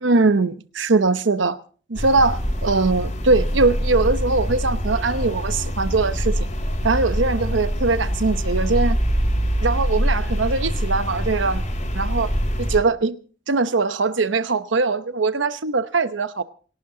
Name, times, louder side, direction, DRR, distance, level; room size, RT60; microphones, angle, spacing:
voice 1, 0.0-1.6 1.9-6.5 6.8-9.0 9.6-11.6 11.9-12.3 12.6-13.2 13.5-16.4, right 3 dB, 85° right, 0.9 m, -21 dB
sound 1, 1.9-12.8, equal, 40° left, 5.4 m, -24 dB
28.0 x 12.0 x 3.9 m
head